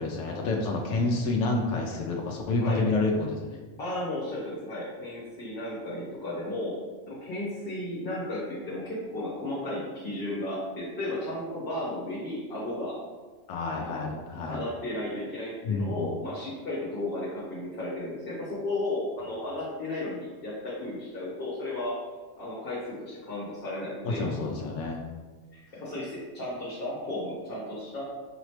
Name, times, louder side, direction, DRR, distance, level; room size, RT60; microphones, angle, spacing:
voice 1, 0.0-3.6 13.5-14.6 15.6-16.1 24.0-25.0, left 3 dB, 80° left, 0 dB, 0.9 m, -28 dB
voice 2, 3.8-6.8 7.1-13.0 13.7-14.1 14.5-22.0 22.4-24.2 25.5-28.0, left 1 dB, 50° left, -8 dB, 1.3 m, -34 dB
4.9 x 3.0 x 3.2 m, 1.3 s
omnidirectional pair, 1.3 m